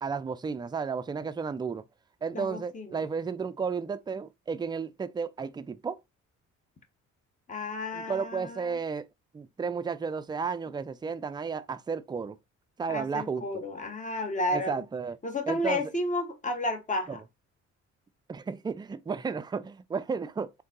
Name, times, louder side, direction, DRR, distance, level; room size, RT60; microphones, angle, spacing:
voice 1, 0.0-1.8 2.2-6.0 7.9-9.1 9.3-12.4 12.8-13.5 14.5-15.2 15.5-15.8 17.1-17.2 18.3-20.5, right 5 dB, 15° right, 0.3 m, -33 dB
voice 2, 2.3-3.0 7.5-8.8 12.9-14.8 15.2-17.2, left 1 dB, 25° left, 1.0 m, -32 dB
3.7 x 2.7 x 3.7 m
cardioid pair, 90°, 30 cm